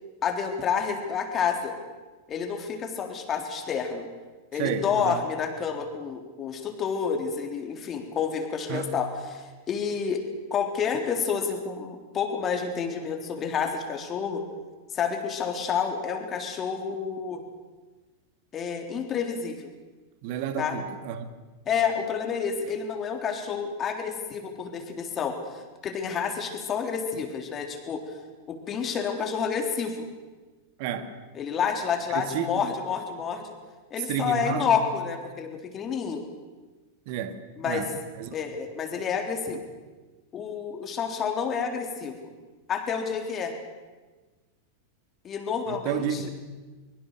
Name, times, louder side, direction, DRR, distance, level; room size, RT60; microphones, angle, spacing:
voice 1, 0.2-1.8 2.3-4.1 4.5-10.2 10.5-14.4 14.9-17.4 18.5-19.7 20.6-20.8 21.7-28.0 28.5-30.1 31.4-33.6 33.9-36.2 37.6-37.8 38.3-39.6 40.3-42.2 42.7-43.6 45.2-46.3, left 6 dB, 25° left, 4 dB, 3.7 m, -29 dB
voice 2, 4.5-5.2 8.7-8.9 20.2-21.3 30.8-31.1 32.1-32.7 34.1-34.8 37.1-37.4 37.7-38.4 45.7-46.3, right 7 dB, 45° right, 9 dB, 2.2 m, -31 dB
24.5 x 22.5 x 6.8 m, 1.3 s
figure-of-eight pair, 90°, 0 cm